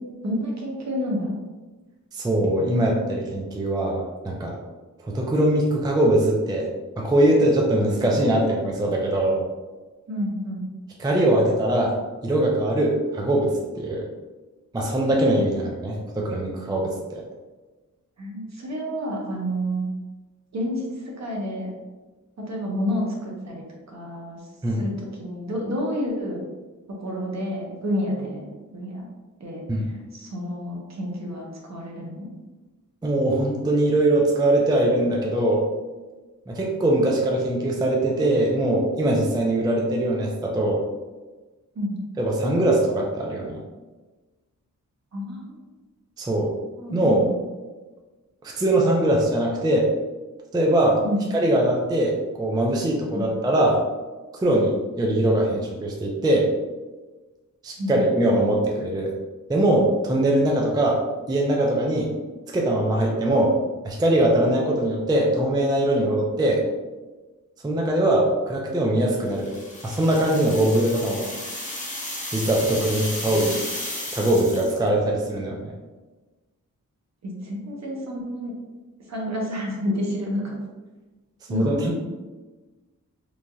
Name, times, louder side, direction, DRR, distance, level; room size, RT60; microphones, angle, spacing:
voice 1, 0.2-1.4 10.1-10.6 18.2-19.9 20.5-21.7 22.4-24.5 24.8-24.9 25.2-26.4 27.0-29.1 29.4-32.3 41.7-42.0 45.1-45.6 46.8-47.4 51.0-51.2 53.1-53.3 57.8-58.0 73.2-73.6 77.2-78.5 79.1-80.6 81.5-82.0, equal, 55° right, -1 dB, 0.7 m, -29 dB
voice 2, 2.1-4.6 5.0-6.7 7.0-9.4 11.0-11.9 12.2-14.0 14.7-17.2 24.6-24.9 29.7-29.8 33.0-35.6 36.5-40.8 42.2-43.6 46.2-46.5 46.9-47.3 48.4-49.9 50.5-51.0 51.3-53.8 54.4-54.7 55.0-56.5 57.6-59.1 59.5-61.0 61.3-62.1 62.5-63.6 63.8-66.6 67.6-69.5 69.8-71.3 72.3-73.5 74.1-75.7 81.5-82.0, right 1 dB, 15° right, -1 dB, 0.3 m, -21 dB
sound 1, 69.3-74.9, left 1 dB, 25° left, 0.7 m, -33 dB
3.1 x 2.6 x 2.2 m, 1.2 s
wide cardioid pair, 115°, 33 cm